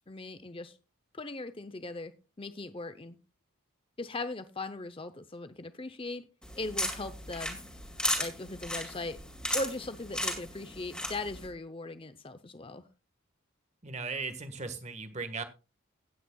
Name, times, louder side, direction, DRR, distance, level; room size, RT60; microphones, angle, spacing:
voice 1, 0.1-0.8 1.1-2.1 2.4-3.2 4.0-6.2 6.5-7.6 8.2-9.2 9.5-12.8, left 2 dB, 25° left, 11 dB, 0.6 m, -39 dB
sound 1, 6.4-11.5, left 1 dB, 5° left, 2.3 m, -35 dB
voice 2, 13.8-15.4, right 4 dB, 30° right, 10 dB, 1.4 m, -37 dB
17.5 x 9.0 x 2.3 m, 0.29 s
head